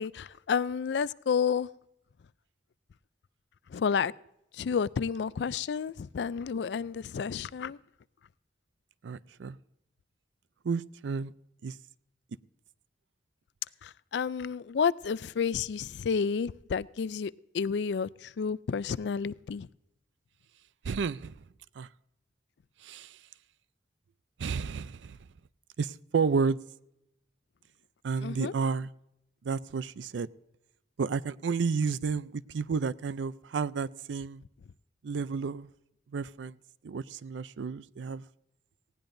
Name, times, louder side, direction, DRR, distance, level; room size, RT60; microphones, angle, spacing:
voice 1, 0.0-1.7 3.7-4.1 4.6-7.8 13.8-19.7 28.2-28.5, left 6 dB, 70° left, 0.4 m, -30 dB
voice 2, 9.0-9.6 10.6-11.3 11.6-11.8 20.8-21.4 21.8-21.9 22.8-23.2 24.4-25.2 25.8-26.6 28.0-28.9 29.4-30.3 31.0-34.4 35.0-35.7 36.1-36.5 36.8-38.2, right 5 dB, 90° right, 0.4 m, -31 dB
19.0 x 16.0 x 2.6 m
head